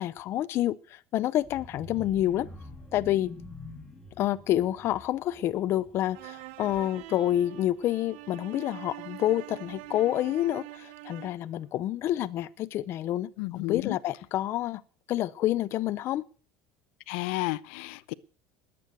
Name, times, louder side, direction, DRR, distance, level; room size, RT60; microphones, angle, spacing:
voice 1, 0.0-2.5 2.9-3.3 4.2-14.8 15.1-16.2, left 13 dB, 40° left, 0.7 m, -28 dB
sound 1, 1.4-7.2 7.5-7.8 8.1-8.2, left 2 dB, 10° left, 2.4 m, -47 dB
sound 2, 6.1-11.5, right 18 dB, 80° right, 0.9 m, -44 dB
voice 2, 13.4-14.0 17.1-18.1, left 20 dB, 80° left, 0.7 m, -32 dB
20.5 x 8.6 x 6.3 m
cardioid pair, 160°, 6 cm